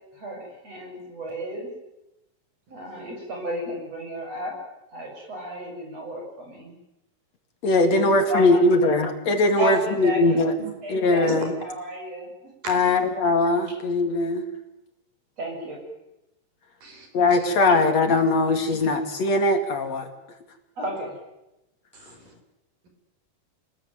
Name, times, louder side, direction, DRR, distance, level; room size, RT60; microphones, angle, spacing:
voice 1, 0.1-1.7 2.7-4.6 4.9-6.7 8.0-8.6 9.6-10.4 10.8-11.3 11.6-13.1 15.4-15.9 17.8-17.9 20.8-21.2, right 1 dB, 45° right, 2 dB, 8.8 m, -33 dB
voice 2, 7.6-10.5 10.9-11.5 12.7-14.4 17.1-20.1, left 2 dB, 55° left, 6 dB, 3.3 m, -20 dB
voice 3, 21.9-22.3, right 3 dB, 85° right, 4 dB, 6.8 m, -35 dB
27.5 x 21.0 x 9.4 m, 0.92 s
omnidirectional pair, 3.8 m